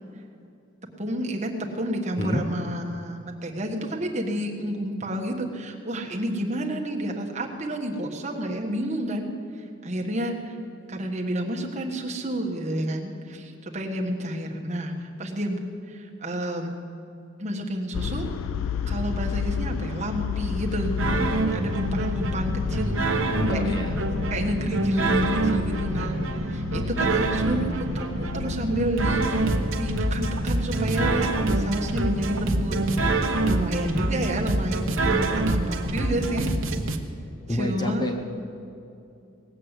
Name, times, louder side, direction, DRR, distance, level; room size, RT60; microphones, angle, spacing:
voice 1, 1.0-9.3 9.6-10.6 10.9-16.7 17.4-18.3 18.9-23.0 23.6-23.8 24.3-28.1 28.3-31.3 31.5-32.8 33.4-36.5 37.5-38.1, right 1 dB, 30° right, 1 dB, 1.4 m, -30 dB
sound 1, 17.9-30.5, left 6 dB, 80° left, 0.4 m, -32 dB
sound 2, 21.0-37.0, right 2 dB, 70° right, 1.1 m, -26 dB
voice 2, 23.3-23.9 37.5-38.1, left 1 dB, 20° left, 3 dB, 0.8 m, -28 dB
18.5 x 7.6 x 8.1 m, 2.7 s
head